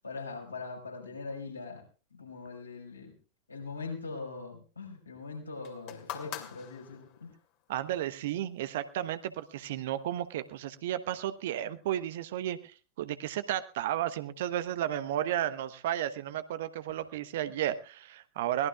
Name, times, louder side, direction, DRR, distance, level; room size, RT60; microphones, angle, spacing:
voice 1, 0.0-1.8 2.1-3.2 3.5-7.3, left 4 dB, 80° left, 0 dB, 5.5 m, -41 dB
sound 1, 5.6-7.4 8.4-8.5, left 12 dB, 45° left, 2.5 m, -43 dB
voice 2, 7.7-18.7, right 11 dB, 55° right, 13 dB, 1.0 m, -33 dB
23.0 x 18.5 x 2.4 m, 0.34 s
figure-of-eight pair, 90°, 0 cm